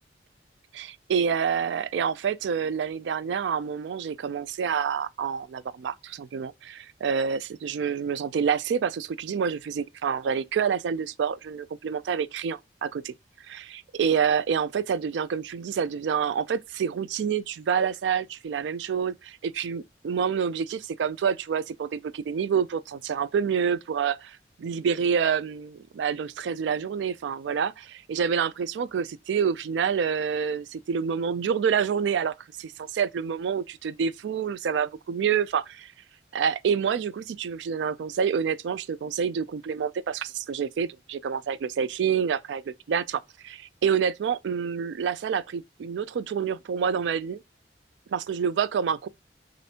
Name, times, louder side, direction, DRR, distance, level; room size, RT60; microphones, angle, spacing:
voice 1, 0.7-13.1 13.5-35.9 36.3-47.4 48.1-49.1, right 7 dB, 80° right, 0.3 m, -28 dB
6.4 x 2.6 x 2.8 m
head